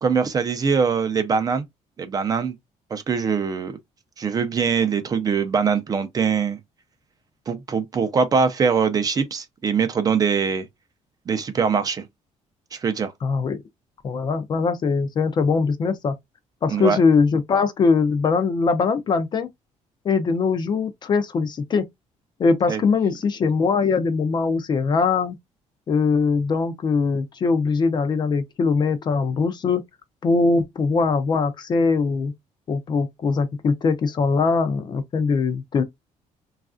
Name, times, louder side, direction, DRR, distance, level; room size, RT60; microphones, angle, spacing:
voice 1, 0.0-1.7 2.0-2.5 2.9-3.7 4.2-6.6 7.5-10.7 11.3-12.1 12.7-13.1 16.7-17.0 22.7-22.8, right 6 dB, 30° right, 0.4 m, -22 dB
voice 2, 13.2-13.6 14.0-16.1 16.6-19.5 20.0-21.8 22.4-25.4 25.9-29.8 30.2-32.3 32.7-35.8, left 4 dB, 35° left, 0.4 m, -21 dB
3.1 x 2.4 x 2.4 m
cardioid pair, 155°, 13 cm